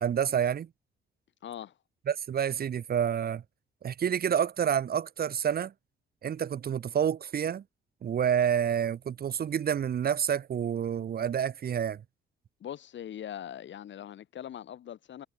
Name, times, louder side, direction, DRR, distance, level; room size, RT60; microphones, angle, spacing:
voice 1, 0.0-0.7 2.1-3.4 3.8-5.7 6.2-7.6 8.0-12.0, right 8 dB, 50° right, 1.2 m, -28 dB
voice 2, 1.4-1.7 12.6-15.3, left 10 dB, 65° left, 7.5 m, -41 dB
cardioid pair, 90°, 20 cm